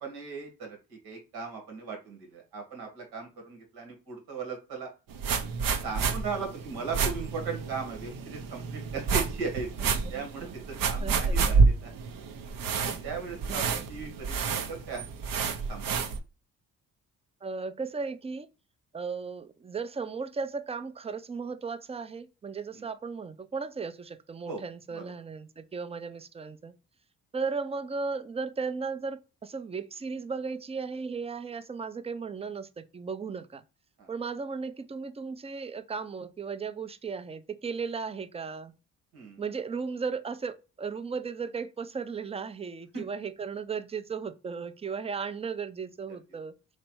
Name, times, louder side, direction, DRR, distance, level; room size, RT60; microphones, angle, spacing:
voice 1, 0.0-4.9 5.8-11.9 13.0-14.3 14.7-15.1 15.7-16.0 22.7-22.9 24.5-24.6 24.9-25.1 34.0-34.1 39.1-39.4 42.9-43.0, right 4 dB, 75° right, 1.5 m, -38 dB
sound 1, 5.1-16.2, right 5 dB, 60° right, 0.7 m, -29 dB
voice 2, 11.0-11.4 13.5-13.8 17.4-18.5 18.9-26.7 27.3-33.6 34.1-38.7 39.4-46.5, right 5 dB, 15° right, 0.4 m, -36 dB
3.2 x 3.1 x 3.0 m
supercardioid pair, 50°, 38 cm